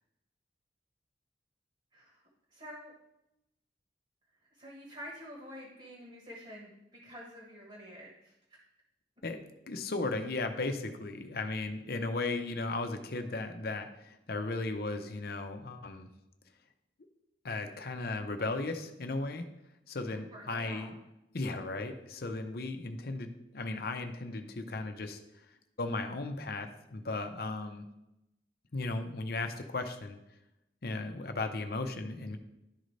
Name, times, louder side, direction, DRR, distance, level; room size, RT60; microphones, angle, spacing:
voice 1, 1.9-2.2 2.5-2.9 4.5-8.6 20.1-20.9, equal, 35° right, -2 dB, 1.3 m, -48 dB
voice 2, 9.7-16.1 17.4-19.4 19.9-21.0 21.3-25.2 25.8-27.8 28.7-30.2 30.8-32.4, left 3 dB, 55° left, 6 dB, 0.7 m, -36 dB
11.5 x 3.9 x 3.2 m, 0.89 s
head